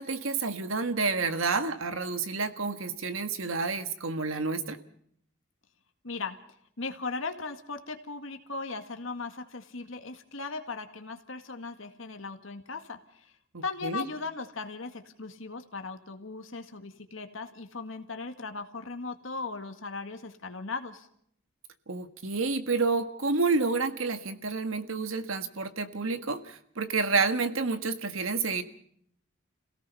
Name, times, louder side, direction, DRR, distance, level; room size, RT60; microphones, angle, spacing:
voice 1, 0.0-4.8 13.5-14.0 21.9-28.6, right 4 dB, 85° right, 9 dB, 1.6 m, -29 dB
voice 2, 6.0-6.4 6.8-13.2 13.6-21.1, left 4 dB, 75° left, 6 dB, 2.0 m, -38 dB
27.5 x 17.5 x 5.7 m, 0.68 s
head